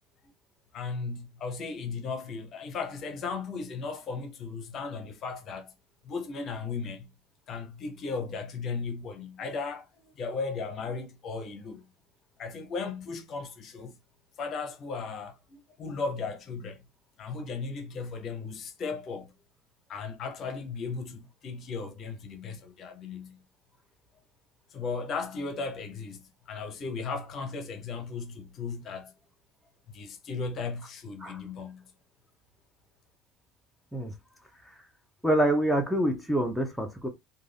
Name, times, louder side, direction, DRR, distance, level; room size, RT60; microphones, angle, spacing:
voice 1, 0.7-5.7 6.0-7.1 7.5-11.9 12.4-13.9 14.4-16.8 17.2-19.3 19.9-23.4 24.7-29.1 29.9-31.9, left 4 dB, 45° left, 0.7 m, -36 dB
voice 2, 35.2-37.1, right 1 dB, ahead, 0.6 m, -26 dB
2.5 x 2.3 x 3.3 m
supercardioid pair, 115°, 0 cm